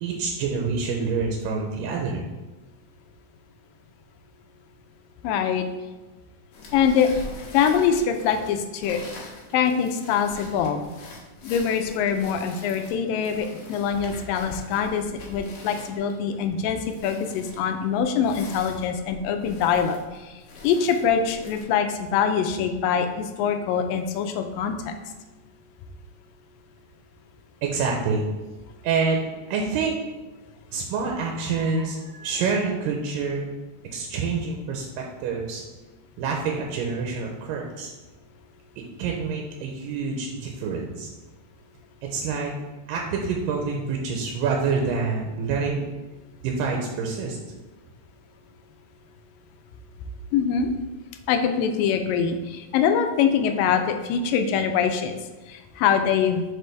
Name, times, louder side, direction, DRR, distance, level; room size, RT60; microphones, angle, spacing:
voice 1, 0.0-2.2 27.6-28.3 28.8-30.0 30.7-33.5 33.9-35.6 36.2-37.9 38.8-41.1 42.1-42.5 42.9-45.8 46.4-47.4, right 4 dB, 85° right, 0 dB, 2.3 m, -27 dB
voice 2, 5.2-5.7 6.7-7.1 7.5-9.0 9.5-10.9 11.4-20.0 20.6-24.9 50.3-50.7 51.3-55.1 55.5-56.4, left 7 dB, 85° left, 6 dB, 2.3 m, -24 dB
sound 1, 6.5-21.6, left 2 dB, 65° left, 2.5 m, -43 dB
6.6 x 4.5 x 3.3 m, 1.2 s
omnidirectional pair, 4.0 m